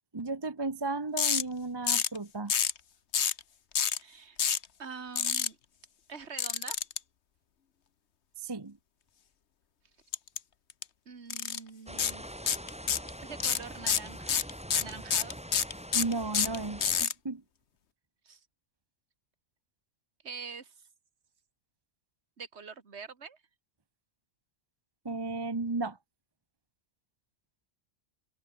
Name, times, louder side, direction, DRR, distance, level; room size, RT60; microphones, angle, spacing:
voice 1, 0.1-2.5 8.4-8.8 15.9-17.4 25.0-26.0, right 3 dB, 20° right, 0.9 m, -34 dB
sound 1, 1.2-1.4 1.9-2.2 2.5-2.8 3.1-3.4 3.7-4.0 4.4-4.6 5.2-5.5 6.4-7.0 10.1-10.4 10.7-10.8 11.3-11.6 12.0-12.1 12.5-13.1 13.4-17.1, left 7 dB, 60° left, 1.3 m, -27 dB
voice 2, 4.0-4.4 4.8-5.6 6.1-6.8 11.1-12.3 13.2-14.5 14.7-15.4 18.2-18.4 20.2-20.9 22.4-23.4, right 5 dB, 55° right, 2.2 m, -44 dB
sound 2, 11.9-17.0, equal, 5° right, 3.1 m, -44 dB
omnidirectional pair, 1.3 m